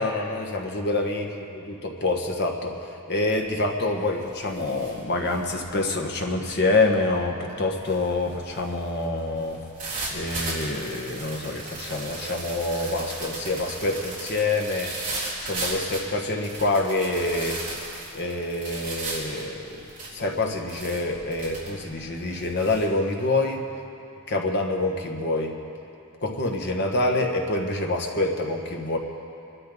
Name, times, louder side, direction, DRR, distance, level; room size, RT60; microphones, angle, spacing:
voice 1, 0.0-1.3 1.5-9.6 10.1-14.9 15.4-17.6 18.1-19.8 20.1-23.6 24.3-25.6 26.2-29.0, left 2 dB, 50° left, 2 dB, 1.5 m, -26 dB
sound 1, 3.2-3.6 3.9-22.9, right 2 dB, 35° right, 3.9 m, -37 dB
25.5 x 12.0 x 4.0 m, 2.7 s
head